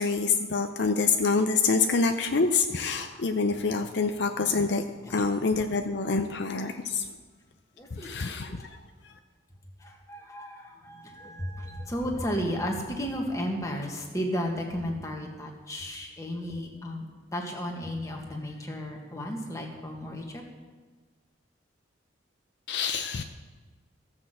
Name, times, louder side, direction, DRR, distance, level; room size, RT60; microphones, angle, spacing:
voice 1, 0.0-4.8 5.1-7.1 8.0-8.7 22.7-23.2, left 4 dB, 60° left, 6 dB, 0.6 m, -26 dB
voice 2, 7.8-8.6 9.8-17.1 17.3-20.4, equal, 15° left, 1 dB, 1.5 m, -34 dB
14.5 x 6.2 x 7.6 m, 1.4 s
head